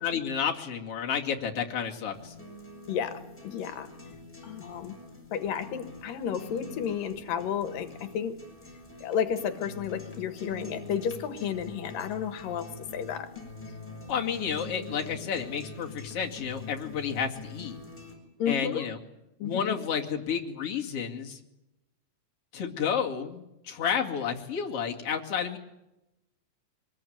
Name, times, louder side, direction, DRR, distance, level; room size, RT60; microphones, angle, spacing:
voice 1, 0.0-2.3 14.1-17.8 18.5-19.0 19.4-21.4 22.5-25.6, left 7 dB, 45° left, 0 dB, 3.2 m, -31 dB
sound 1, 2.1-18.1, left 2 dB, 5° left, 5.8 m, -44 dB
voice 2, 2.9-3.9 4.4-4.9 5.3-8.3 9.0-12.7 12.9-13.3 18.4-18.9 19.4-19.8, left 8 dB, 85° left, 10 dB, 3.0 m, -32 dB
24.5 x 20.0 x 9.4 m, 0.92 s
omnidirectional pair, 3.8 m